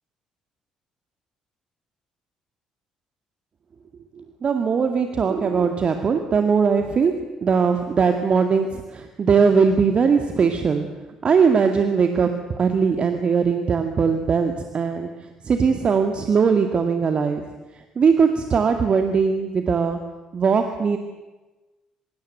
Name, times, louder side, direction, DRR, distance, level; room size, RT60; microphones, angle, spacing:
voice 1, 4.2-7.1 7.4-10.9 11.2-17.4 17.7-20.1 20.3-21.0, right 5 dB, 40° right, 6 dB, 2.1 m, -20 dB
24.5 x 23.5 x 8.0 m, 1.1 s
figure-of-eight pair, 45°, 3 cm